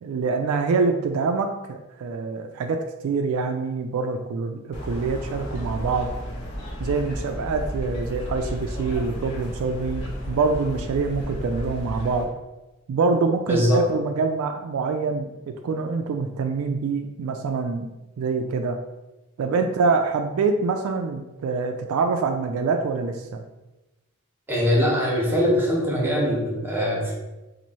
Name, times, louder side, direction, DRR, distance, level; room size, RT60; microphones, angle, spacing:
voice 1, 0.0-6.1 6.8-12.3 12.9-17.9 18.2-18.8 19.4-23.4, right 4 dB, 65° right, 5 dB, 0.3 m, -25 dB
sound 1, 4.7-12.2, equal, 55° left, 1.0 m, -33 dB
voice 2, 13.5-13.8 24.5-27.1, equal, 10° right, -3 dB, 0.9 m, -22 dB
3.0 x 2.6 x 4.2 m, 1.0 s
head